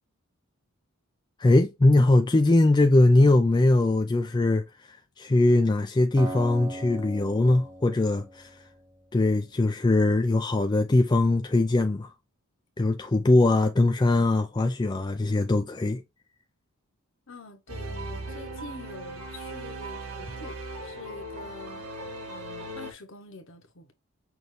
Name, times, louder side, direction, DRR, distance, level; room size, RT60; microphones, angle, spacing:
voice 1, 1.4-8.5 9.1-12.1 12.8-16.0, left 2 dB, 20° left, 0.3 m, -21 dB
Acoustic guitar, 6.2-9.3, right 2 dB, 15° right, 0.7 m, -39 dB
voice 2, 17.3-21.8 22.3-23.9, left 2 dB, 60° left, 1.1 m, -45 dB
sound 1, 17.7-22.9, right 2 dB, 85° right, 1.8 m, -38 dB
6.1 x 2.7 x 3.2 m
head